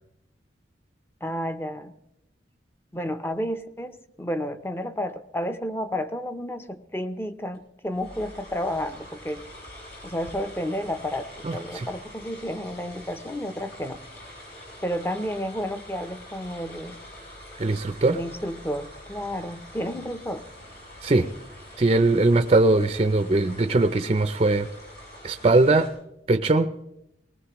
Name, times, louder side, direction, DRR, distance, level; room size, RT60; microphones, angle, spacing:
voice 1, 1.2-2.0 2.9-9.4 10.0-14.0 14.8-17.0 18.1-20.4, equal, 15° left, 9 dB, 0.6 m, -31 dB
sound 1, 7.5-7.6 7.9-25.9, left 1 dB, 65° left, 7.6 m, -45 dB
voice 2, 11.4-11.9 17.6-18.2 21.0-21.3 21.8-24.7 25.2-25.9 26.3-26.7, right 2 dB, 30° right, 9 dB, 0.4 m, -20 dB
19.5 x 19.5 x 3.0 m, 0.85 s
head